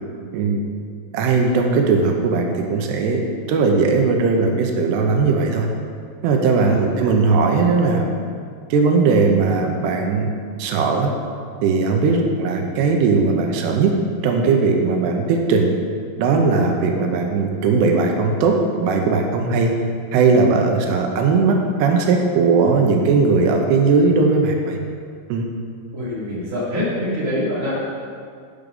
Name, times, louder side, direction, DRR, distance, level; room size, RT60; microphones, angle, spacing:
voice 1, 1.1-5.7 6.2-8.1 8.7-10.3 10.6-11.1 11.6-13.9 14.2-15.7 16.2-19.7 20.1-24.8 25.3-25.5, right 4 dB, 85° right, 2 dB, 2.9 m, -18 dB
voice 2, 6.6-7.1 12.1-12.2 25.9-27.8, left 1 dB, 20° right, -8 dB, 2.7 m, -25 dB
8.8 x 8.3 x 5.3 m, 2.1 s
omnidirectional pair, 4.7 m